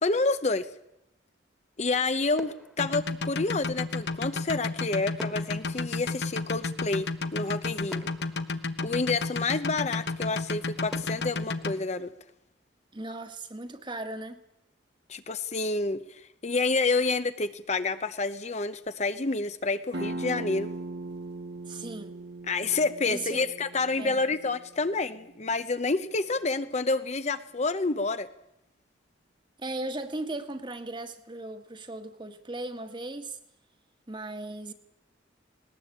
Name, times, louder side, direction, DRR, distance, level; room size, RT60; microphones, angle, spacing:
voice 1, 0.0-0.7 1.8-8.1 8.8-12.1 15.1-20.7 22.5-28.3, left 3 dB, 35° left, 0.8 m, -29 dB
sound 1, 1.7-2.1 2.3-3.8 5.2-7.1 7.5-7.6 7.9-9.5 10.0-10.1 10.9-12.8 13.1-13.4, equal, ahead, 1.7 m, -48 dB
sound 2, 2.8-11.7, left 3 dB, 60° left, 1.1 m, -31 dB
voice 2, 12.9-14.4 21.6-22.2 23.1-23.5 24.0-24.2 29.6-33.4 34.1-34.7, right 2 dB, 25° right, 1.6 m, -37 dB
sound 3, 19.9-25.3, right 2 dB, 60° right, 1.7 m, -39 dB
20.0 x 19.0 x 8.5 m
head